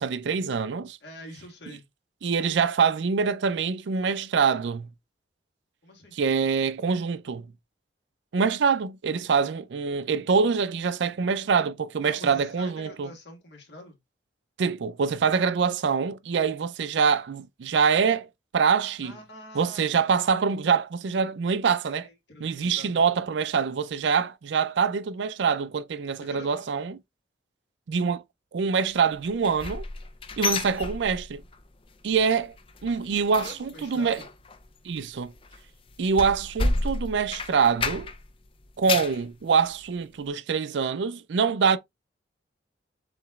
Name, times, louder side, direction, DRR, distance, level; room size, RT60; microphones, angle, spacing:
voice 1, 0.0-1.0 2.2-4.9 6.1-7.5 8.3-13.1 14.6-18.3 18.5-19.1 19.5-22.1 22.4-27.0 27.9-28.2 28.5-29.8 30.4-31.4 32.0-32.5 32.8-34.2 34.8-35.3 36.0-38.1 38.8-41.8, right 5 dB, 65° right, 0.4 m, -25 dB
voice 2, 1.0-1.8 5.8-6.1 12.0-14.0 19.0-19.9 21.8-23.1 26.0-26.8 33.2-34.3, left 1 dB, 60° left, 1.6 m, -46 dB
sound 1, 29.2-31.6 31.9-32.2 32.5-38.3 38.6-39.2 39.7-39.8 40.3-40.4, left 3 dB, 30° left, 0.4 m, -31 dB
7.1 x 2.9 x 2.3 m
head